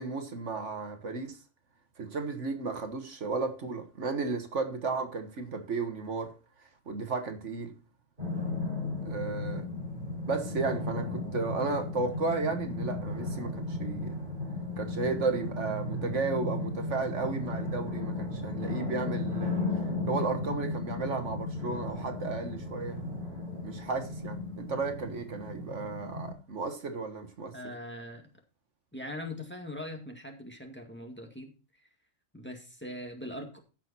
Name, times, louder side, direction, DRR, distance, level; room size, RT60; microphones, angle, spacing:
voice 1, 0.0-1.4 2.0-6.4 6.9-7.7 9.0-9.7 10.2-14.2 14.8-19.6 20.0-23.0 23.6-27.6, right 4 dB, 70° right, 1.8 m, -34 dB
sound 1, 8.2-26.3, left 2 dB, 40° right, 4.8 m, -35 dB
voice 2, 27.5-28.2 28.9-31.5 32.3-33.6, left 1 dB, 10° left, 2.0 m, -41 dB
15.0 x 6.2 x 4.2 m
omnidirectional pair, 1.3 m